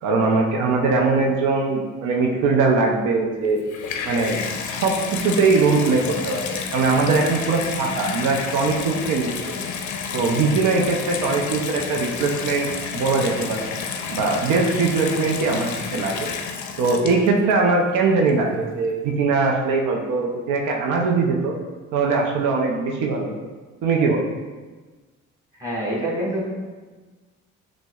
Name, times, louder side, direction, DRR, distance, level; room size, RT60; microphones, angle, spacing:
voice 1, 0.0-3.6 4.0-4.4 4.7-9.6 10.1-13.7 14.1-16.3 16.8-21.5 21.9-23.4 23.8-24.3, right 3 dB, 85° right, 0 dB, 0.5 m, -21 dB
Water tap faucet / Bathtub (filling or washing), 3.4-17.5 18.3-18.4, left 6 dB, 70° left, 0.4 m, -30 dB
voice 2, 25.6-26.5, right 1 dB, 10° right, -7 dB, 1.5 m, -25 dB
5.9 x 2.1 x 2.3 m, 1.3 s
cardioid pair, 90°, 30 cm